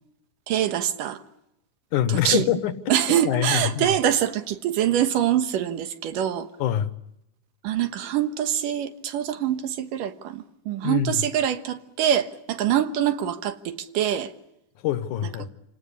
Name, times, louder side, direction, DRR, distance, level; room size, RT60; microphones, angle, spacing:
voice 1, 0.5-1.2 2.1-2.5 2.9-6.5 7.6-14.3, right 10 dB, 80° right, 2.9 m, -24 dB
voice 2, 1.9-2.7 3.2-3.9 6.6-6.9 10.8-11.2 14.8-15.5, left 11 dB, 70° left, 2.5 m, -24 dB
28.5 x 18.0 x 9.9 m
omnidirectional pair, 3.8 m